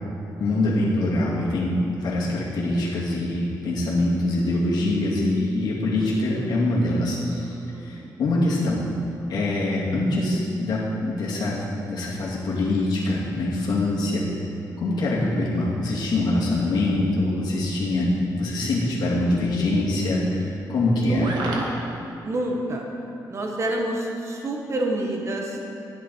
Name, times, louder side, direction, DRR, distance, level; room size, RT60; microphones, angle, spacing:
voice 1, 0.4-7.6 7.8-8.8 9.3-14.3 14.8-21.3, left 2 dB, 70° left, -5 dB, 2.4 m, -24 dB
voice 2, 7.7-8.1 20.9-21.6 22.2-22.8 23.3-25.6, right 1 dB, 40° right, 0 dB, 1.4 m, -28 dB
sound 1, 17.3-21.8, right 2 dB, 85° right, 1.5 m, -39 dB
11.5 x 10.0 x 4.6 m, 2.6 s
cardioid pair, 120°, 7 cm